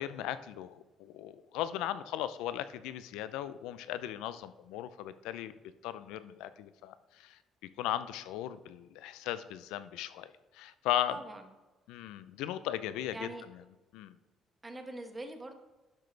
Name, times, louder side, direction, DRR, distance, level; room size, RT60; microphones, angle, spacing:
voice 1, 0.0-5.5 5.8-7.4 7.8-10.3 10.5-11.2 11.9-13.3 13.9-14.2, left 12 dB, 80° left, 14 dB, 0.5 m, -37 dB
voice 2, 11.1-11.4 13.1-13.4 14.6-15.5, right 2 dB, 25° right, 5 dB, 1.6 m, -43 dB
12.0 x 6.2 x 3.4 m, 1.2 s
hypercardioid pair, 55°, 0 cm